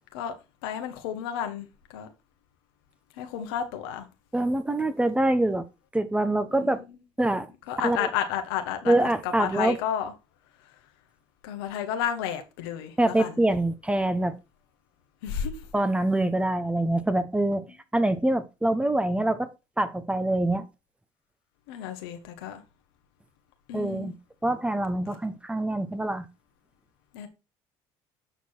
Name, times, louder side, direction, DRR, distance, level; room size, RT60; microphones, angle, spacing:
voice 1, 0.6-2.1 3.2-4.1 6.6-6.8 7.7-10.1 11.4-13.4 15.2-15.6 21.7-22.6 23.7-24.1 27.1-27.3, left 9 dB, 85° left, 1.4 m, -32 dB
voice 2, 4.3-5.7 5.9-6.8 7.2-7.5 7.8-8.1 8.9-9.8 13.0-14.4 15.7-17.7 17.9-19.5 19.8-20.7 23.7-24.1 24.4-26.3, right 1 dB, 10° right, 1.0 m, -25 dB
8.1 x 4.7 x 4.3 m
supercardioid pair, 75°, 12 cm